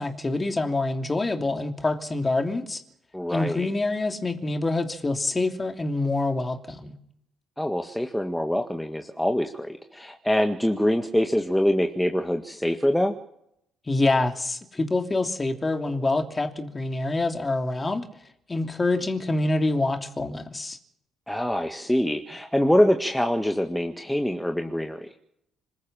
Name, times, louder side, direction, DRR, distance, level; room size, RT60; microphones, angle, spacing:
voice 1, 0.0-2.8 3.3-6.9 13.9-18.1 18.5-20.8, left 2 dB, 25° left, 3.0 m, -26 dB
voice 2, 3.1-3.7 7.6-13.2 21.3-25.1, equal, 5° left, 1.8 m, -24 dB
26.5 x 13.5 x 7.5 m
figure-of-eight pair, 45°, 0 cm